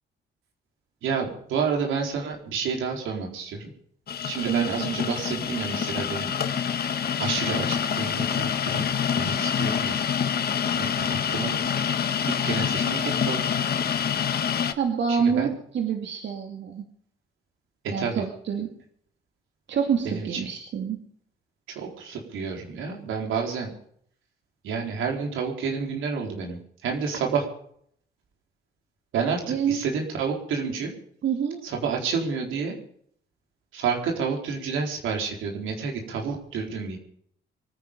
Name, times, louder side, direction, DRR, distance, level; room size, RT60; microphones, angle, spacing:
voice 1, 1.0-3.7 4.2-6.3 7.2-8.9 9.1-10.0 10.7-11.5 12.3-13.4 15.1-15.5 17.8-18.2 20.1-20.4 21.7-23.7 24.6-26.6 26.8-27.5 29.1-30.9 31.6-32.8 33.7-37.0, right 5 dB, 85° right, 1 dB, 4.3 m, -29 dB
sound 1, 4.1-14.7, left 8 dB, 50° left, 1.4 m, -26 dB
voice 2, 4.5-5.4 14.8-16.8 17.9-18.7 19.7-21.0 29.5-29.8 31.2-31.6, right 7 dB, 65° right, 2 dB, 2.6 m, -27 dB
24.5 x 10.0 x 5.4 m, 0.64 s
cardioid pair, 90°, 20 cm